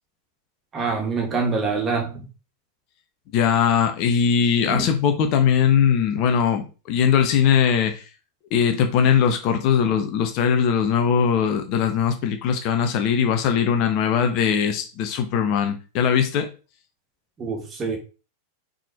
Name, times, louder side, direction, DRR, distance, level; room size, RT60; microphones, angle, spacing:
voice 1, 0.7-2.3 4.6-4.9 17.4-18.0, right 4 dB, 25° right, 2.1 m, -25 dB
voice 2, 3.3-8.0 8.5-16.5, left 7 dB, 40° left, 1.3 m, -20 dB
6.6 x 4.1 x 4.5 m
figure-of-eight pair, 90°, 0 cm